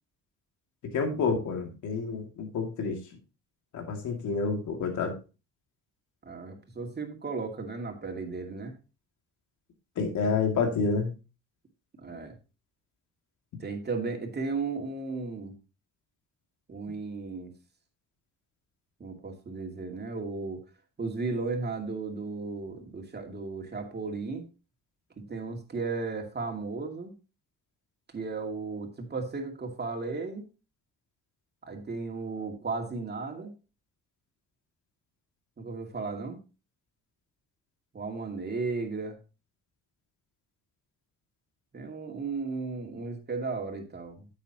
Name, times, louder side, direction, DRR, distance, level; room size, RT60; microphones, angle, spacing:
voice 1, 0.8-3.0 3.7-5.1 10.0-11.1, left 4 dB, 75° left, 3 dB, 2.5 m, -29 dB
voice 2, 6.2-8.8 12.0-12.4 13.6-15.5 16.7-17.5 19.0-20.6 21.0-24.4 25.2-27.1 28.1-30.5 31.6-33.5 35.6-36.4 37.9-39.2 41.7-44.3, right 4 dB, 35° right, 3 dB, 2.4 m, -35 dB
9.5 x 8.0 x 2.9 m, 0.31 s
cardioid pair, 90°, 30 cm